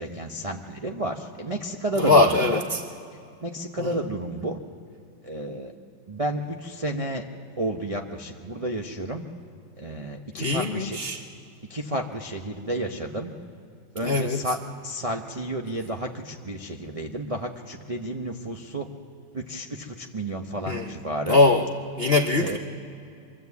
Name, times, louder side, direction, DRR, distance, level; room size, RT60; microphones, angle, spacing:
voice 1, 0.0-2.6 3.4-4.6 5.2-5.7 6.1-7.2 7.6-9.2 9.8-11.0 11.7-13.3 13.9-18.9 19.3-21.4 22.4-22.6, right 1 dB, 60° right, 1 dB, 0.3 m, -31 dB
voice 2, 2.0-2.6 3.8-3.9 10.4-11.2 14.0-14.4 20.7-20.9 21.3-21.6 22.0-22.6, left 3 dB, 70° left, 5 dB, 0.5 m, -21 dB
24.0 x 13.0 x 8.2 m, 2.5 s
omnidirectional pair, 2.1 m